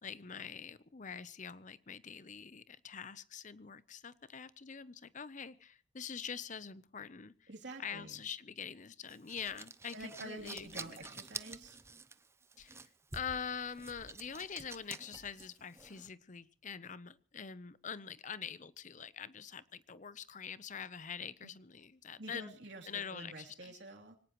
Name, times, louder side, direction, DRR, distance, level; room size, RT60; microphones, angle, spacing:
voice 1, 0.0-7.5 7.8-11.2 12.6-22.5 22.9-23.8, left 7 dB, 40° left, 16 dB, 0.7 m, -45 dB
voice 2, 7.5-8.2 9.9-11.8 21.4-21.5 22.2-24.2, right 2 dB, 70° right, 1 dB, 3.2 m, -48 dB
sound 1, 9.1-16.1, right 4 dB, 15° right, 0.6 m, -49 dB
24.0 x 18.0 x 3.1 m, 0.43 s
head